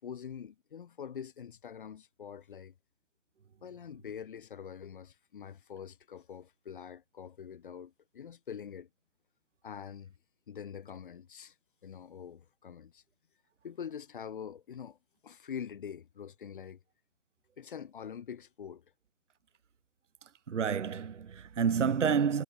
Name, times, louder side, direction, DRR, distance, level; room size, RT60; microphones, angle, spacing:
voice 1, 0.0-2.7 3.6-8.9 9.6-10.1 10.5-11.5 11.8-13.0 13.6-15.0 15.2-16.8 17.6-18.8, left 8 dB, 35° left, 4.9 m, -44 dB
voice 2, 20.5-22.4, right 6 dB, 60° right, 0.7 m, -29 dB
figure-of-eight pair, 145°, 42 cm